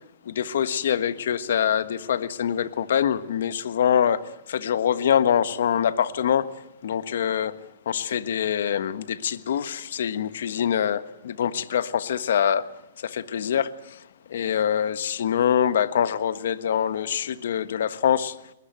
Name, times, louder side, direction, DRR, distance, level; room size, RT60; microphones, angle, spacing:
voice 1, 0.2-6.5 6.8-7.6 7.8-12.7 13.0-14.0 14.3-18.3, left 9 dB, 70° left, 13 dB, 1.4 m, -24 dB
21.5 x 21.0 x 9.2 m, 0.83 s
hypercardioid pair, 140°, 0 cm